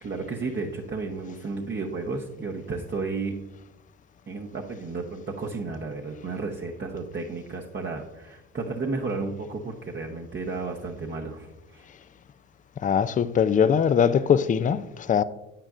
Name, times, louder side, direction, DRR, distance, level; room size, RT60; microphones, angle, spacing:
voice 1, 0.0-3.3 4.3-11.9, right 3 dB, 30° right, 0.9 m, -33 dB
voice 2, 12.8-15.2, left 7 dB, 25° left, 0.4 m, -21 dB
8.9 x 8.7 x 2.5 m
hypercardioid pair, 60°, 36 cm